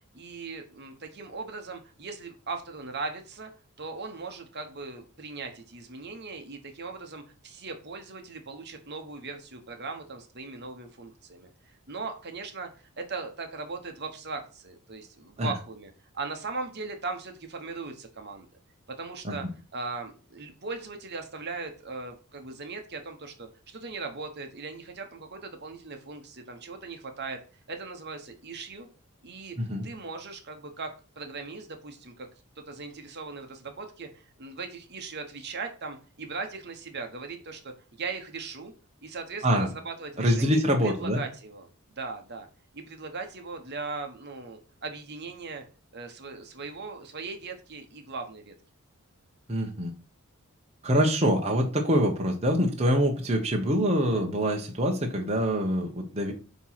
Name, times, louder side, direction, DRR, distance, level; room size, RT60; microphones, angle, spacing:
voice 1, 0.1-3.5 3.8-11.5 11.9-12.7 13.0-18.5 19.0-19.4 19.7-27.4 27.7-28.9 29.2-29.6 29.8-32.3 32.6-38.7 39.0-40.6 40.8-42.5 42.7-45.6 45.9-48.5, right 4 dB, 50° right, 5 dB, 1.3 m, -39 dB
voice 2, 39.4-39.7 40.2-41.2 49.5-49.9 50.8-56.3, equal, 30° right, 1 dB, 1.2 m, -25 dB
9.1 x 3.1 x 5.7 m, 0.35 s
head